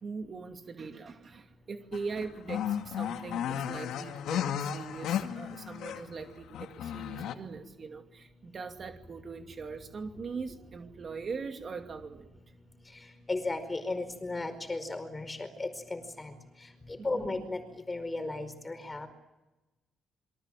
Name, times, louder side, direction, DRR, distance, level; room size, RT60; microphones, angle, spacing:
voice 1, 0.0-12.3 17.1-17.3, right 4 dB, 40° right, 5 dB, 2.5 m, -41 dB
sound 1, 1.9-6.2 6.5-7.3, left 9 dB, 80° left, 2.3 m, -34 dB
voice 2, 13.3-16.3 16.9-17.6 17.9-19.1, left 2 dB, 20° left, 10 dB, 4.9 m, -35 dB
28.0 x 24.0 x 7.6 m, 1.0 s
cardioid pair, 120°, 0 cm